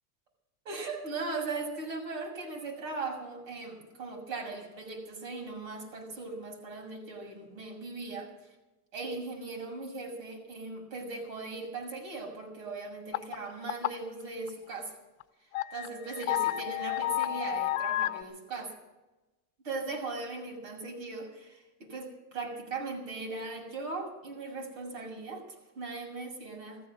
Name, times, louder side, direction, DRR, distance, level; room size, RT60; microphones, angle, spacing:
voice 1, 0.6-8.3 8.9-14.9 15.7-18.7 19.6-25.5 25.7-26.8, right 3 dB, 85° right, 2 dB, 6.6 m, -39 dB
sound 1, 13.1-13.4 13.7-14.1 14.5-14.6 15.2-15.3 15.5-18.2, left 15 dB, 90° left, 0.8 m, -31 dB
15.0 x 15.0 x 6.2 m, 1.0 s
supercardioid pair, 160°, 40 cm